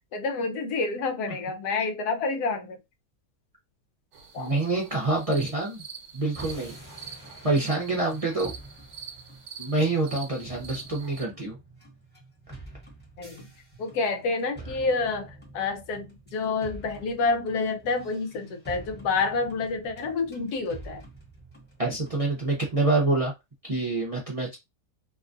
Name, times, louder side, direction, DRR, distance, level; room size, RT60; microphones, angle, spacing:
voice 1, 0.1-2.8 4.3-4.5 13.2-13.5 13.8-21.1, left 4 dB, 80° left, 1.2 m, -28 dB
sound 1, 4.1-11.2, right 7 dB, 60° right, 0.9 m, -44 dB
voice 2, 4.4-5.8 6.1-6.8 7.4-8.5 9.6-11.6 21.8-23.3 23.6-24.6, right 2 dB, 30° right, 0.6 m, -26 dB
sound 2, 6.3-22.7, right 2 dB, 10° left, 1.0 m, -47 dB
2.9 x 2.3 x 2.5 m
omnidirectional pair, 1.6 m